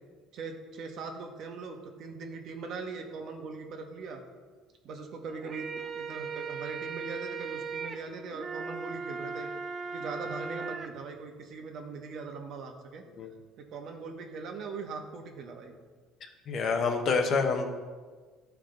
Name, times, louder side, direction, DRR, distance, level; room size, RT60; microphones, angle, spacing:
voice 1, 0.3-4.2 4.8-9.5 9.9-13.1 13.6-15.7, right 4 dB, 55° right, 3 dB, 1.2 m, -40 dB
sound 1, 5.3-10.9, right 5 dB, 30° right, 0.5 m, -38 dB
voice 2, 16.5-17.7, left 4 dB, 45° left, 5 dB, 1.0 m, -27 dB
12.0 x 4.7 x 3.9 m, 1.5 s
cardioid pair, 130°, 0 cm